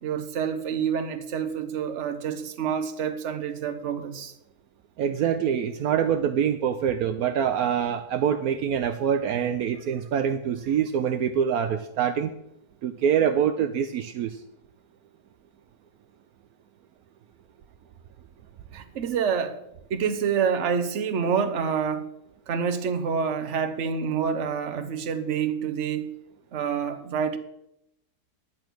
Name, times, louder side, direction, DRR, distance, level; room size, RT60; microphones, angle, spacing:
voice 1, 0.0-4.3 18.7-19.6 19.9-22.1 22.5-26.1 26.5-27.4, right 7 dB, 50° right, 1.2 m, -27 dB
voice 2, 5.0-12.3 12.8-14.4, right 8 dB, 75° right, 1.1 m, -25 dB
10.5 x 8.6 x 6.1 m
omnidirectional pair, 1.6 m